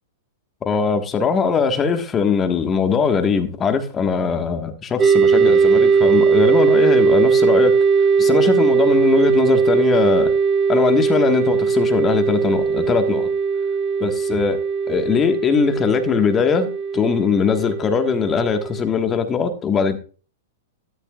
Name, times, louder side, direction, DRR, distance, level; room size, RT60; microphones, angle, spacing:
voice 1, 0.6-7.7 8.2-10.3 10.7-13.3 14.0-14.6 14.9-16.7 16.9-20.0, left 6 dB, 25° left, 1.6 m, -20 dB
sound 1, 5.0-18.9, right 5 dB, 20° right, 1.4 m, -18 dB
13.5 x 13.0 x 2.5 m
hypercardioid pair, 120°, 0 cm